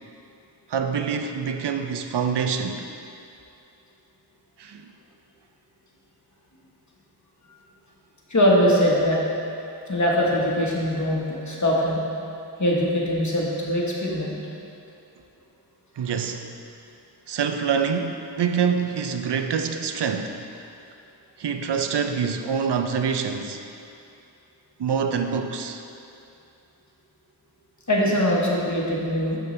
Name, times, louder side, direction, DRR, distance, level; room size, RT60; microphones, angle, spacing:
voice 1, 0.7-2.8 4.6-4.9 16.0-16.5 17.3-20.4 21.4-23.6 24.8-25.8, right 6 dB, 75° right, 6 dB, 0.5 m, -26 dB
voice 2, 8.3-9.2 9.9-12.0 12.6-14.3 27.9-29.4, equal, 45° left, -4 dB, 1.2 m, -22 dB
6.9 x 6.6 x 3.2 m, 2.7 s
wide cardioid pair, 75°, 41 cm